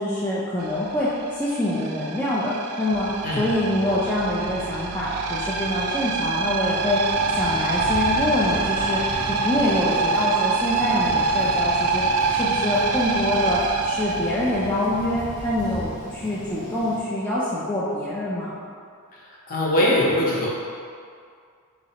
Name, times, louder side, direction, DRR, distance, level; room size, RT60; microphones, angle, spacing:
voice 1, 0.0-3.1 3.4-7.0 7.3-9.0 9.3-18.5, left 1 dB, 10° left, -9 dB, 0.4 m, -25 dB
sound 1, 0.6-15.2, right 4 dB, 80° right, 0.3 m, -25 dB
Thunder, 7.1-17.0, equal, 70° left, 0.9 m, -38 dB
voice 2, 19.5-20.5, left 1 dB, 40° left, -6 dB, 0.8 m, -21 dB
4.0 x 3.1 x 2.8 m, 2.2 s
head